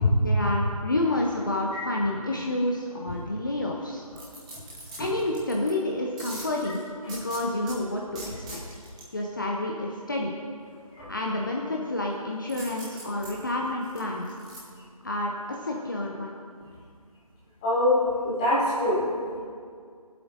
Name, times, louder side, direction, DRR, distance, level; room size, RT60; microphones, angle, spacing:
voice 1, 0.2-4.0 5.0-6.8 7.1-8.3 9.1-10.3 11.1-14.3 15.0-16.4, left 1 dB, 35° left, -1 dB, 0.7 m, -29 dB
sound 1, 4.1-5.7 6.2-7.8 8.1-9.0 12.5-14.6 15.0-15.1, right 1 dB, 10° right, 1.2 m, -42 dB
voice 2, 17.6-19.1, left 2 dB, 10° left, -9 dB, 1.2 m, -23 dB
22.5 x 7.7 x 2.6 m, 2.2 s
figure-of-eight pair, 160°, 19 cm